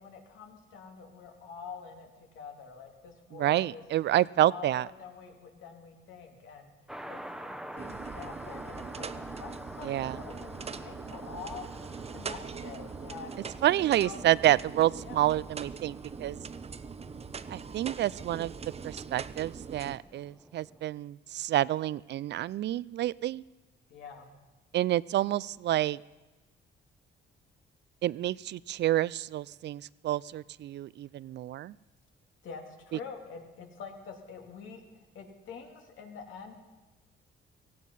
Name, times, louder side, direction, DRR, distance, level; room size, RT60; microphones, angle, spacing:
voice 1, 0.0-3.8 4.3-6.7 7.0-11.7 12.1-13.4 13.8-14.3 15.1-15.3 23.9-24.3 32.4-34.8 35.1-36.5, left 5 dB, 80° left, 3 dB, 2.7 m, -46 dB
voice 2, 3.3-4.9 9.8-10.2 13.6-16.4 17.5-18.5 18.8-23.4 24.7-26.0 28.0-31.8 32.9-33.0, right 13 dB, 60° right, 22 dB, 0.4 m, -28 dB
sound 1, 6.9-20.8, equal, ahead, 0.9 m, -47 dB
sound 2, 7.8-20.0, right 5 dB, 30° right, 0.7 m, -42 dB
17.0 x 15.5 x 5.5 m, 1.2 s
cardioid pair, 90°, 20 cm